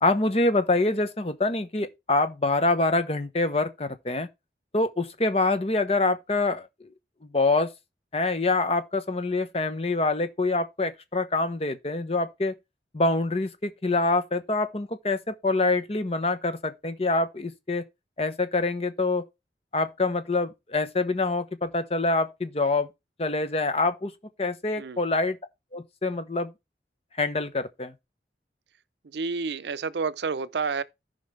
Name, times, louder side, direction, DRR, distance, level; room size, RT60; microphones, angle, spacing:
voice 1, 0.0-4.3 4.7-6.9 7.3-7.7 8.1-12.5 12.9-17.8 18.2-19.3 19.7-22.9 23.2-24.1 24.4-25.4 25.7-26.5 27.2-27.9, left 2 dB, 35° left, 0.9 m, -25 dB
voice 2, 29.1-30.8, right 4 dB, 75° right, 0.5 m, -29 dB
14.0 x 5.3 x 3.2 m
head